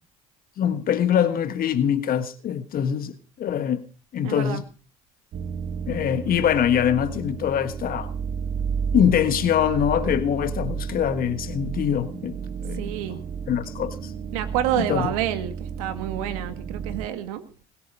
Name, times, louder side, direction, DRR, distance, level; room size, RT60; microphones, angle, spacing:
voice 1, 0.6-3.8 4.1-4.6 5.9-8.1 8.9-12.3 12.6-12.9 13.5-14.1 14.8-15.1, left 9 dB, 55° left, 1.4 m, -23 dB
voice 2, 4.2-4.6 12.7-13.2 14.3-17.4, right 12 dB, 80° right, 2.1 m, -28 dB
sound 1, 5.3-17.1, right 6 dB, 55° right, 1.5 m, -32 dB
21.0 x 7.8 x 5.3 m
hypercardioid pair, 65°, 18 cm